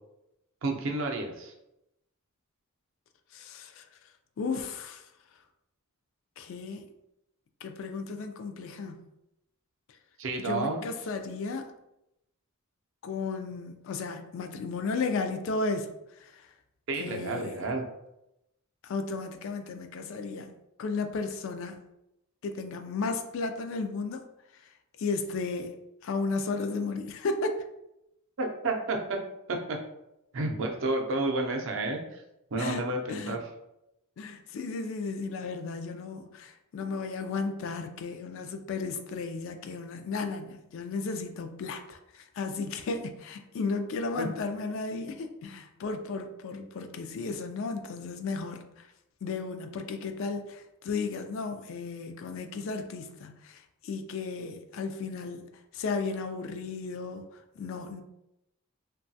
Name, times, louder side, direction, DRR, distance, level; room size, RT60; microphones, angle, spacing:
voice 1, 0.6-1.5 10.2-10.8 16.9-17.8 28.4-29.2 29.5-29.8 30.3-32.2 32.5-33.4 44.2-44.3, right 2 dB, 60° right, 2 dB, 0.5 m, -30 dB
voice 2, 3.3-3.9 4.4-5.1 6.4-6.9 7.6-9.0 10.4-11.7 13.0-16.5 17.0-17.5 18.8-20.5 20.8-21.8 22.4-24.2 24.5-24.7 25.0-25.7 26.0-27.6 32.6-33.4 34.2-48.9 49.2-58.0, left 4 dB, 60° left, 7 dB, 0.3 m, -34 dB
3.0 x 2.2 x 2.6 m, 0.86 s
head